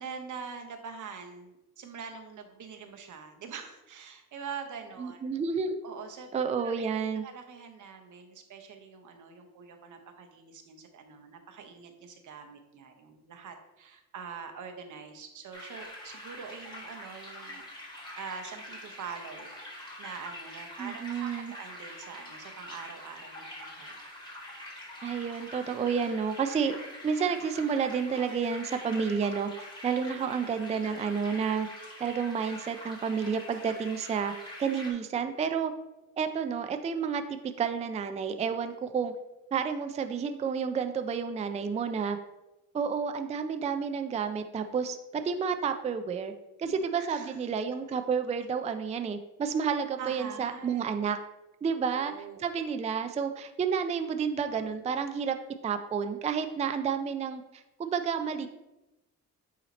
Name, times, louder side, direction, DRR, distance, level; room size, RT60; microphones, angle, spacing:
voice 1, 0.0-5.3 5.8-6.3 6.6-6.7 7.2-17.6 18.2-24.0 30.1-30.3 46.6-47.4 50.0-50.9 51.7-52.4, right 6 dB, 70° right, 5 dB, 0.9 m, -44 dB
voice 2, 5.0-5.8 6.3-7.2 20.8-21.5 25.0-26.8 27.0-29.5 29.8-31.7 32.0-34.3 34.6-35.7 36.2-39.1 39.5-42.2 42.7-46.3 46.6-51.2 51.6-52.1 52.4-55.4 55.6-58.5, right 6 dB, 20° right, 8 dB, 0.3 m, -30 dB
sound 1, 15.5-34.9, left 1 dB, 15° left, 1.6 m, -45 dB
8.5 x 2.9 x 4.0 m, 0.99 s
cardioid pair, 125°, 32 cm